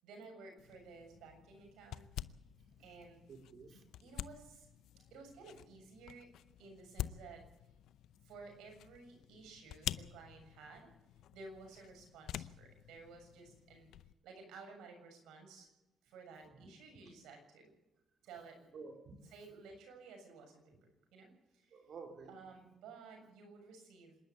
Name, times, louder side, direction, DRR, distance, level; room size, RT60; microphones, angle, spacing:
voice 1, 0.0-2.1 2.8-3.2 4.0-4.7 5.1-6.3 6.6-7.5 8.2-10.9 11.3-13.9 14.2-15.7 16.0-17.7 18.2-18.7 19.3-21.8 22.3-24.2, right 4 dB, 90° right, 4 dB, 7.2 m, -54 dB
sound 1, 0.6-14.1, left 12 dB, 80° left, 0.6 m, -48 dB
voice 2, 3.3-3.8 16.5-16.7 17.0-17.1 18.7-19.2 21.7-22.5, right 4 dB, 60° right, 4 dB, 4.4 m, -52 dB
26.5 x 11.5 x 8.7 m, 0.96 s
cardioid pair, 90°, 0 cm